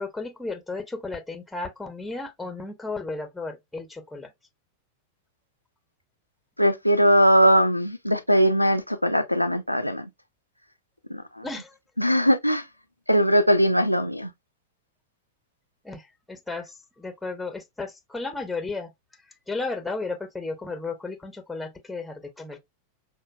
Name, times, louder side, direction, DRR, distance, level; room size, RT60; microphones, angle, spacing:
voice 1, 0.0-4.3 11.4-11.8 15.8-18.9 19.2-22.6, left 3 dB, 5° left, 0.8 m, -34 dB
voice 2, 6.6-10.1 11.1-11.5 12.0-12.6 13.1-14.3, equal, 90° left, 0.5 m, -20 dB
6.4 x 2.2 x 2.2 m
figure-of-eight pair, 90°, 0 cm